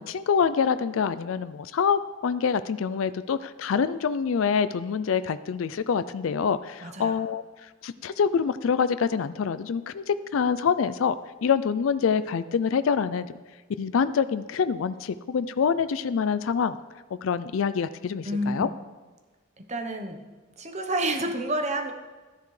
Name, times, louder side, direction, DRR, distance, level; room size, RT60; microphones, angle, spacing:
voice 1, 0.0-7.4 7.8-11.2 11.4-13.3 13.8-16.8 17.2-18.7, left 6 dB, 85° left, 14 dB, 0.4 m, -26 dB
voice 2, 6.8-7.2 18.2-18.7 19.6-20.2 20.6-21.9, right 1 dB, 35° right, 6 dB, 0.9 m, -29 dB
12.5 x 10.5 x 3.3 m, 1.3 s
head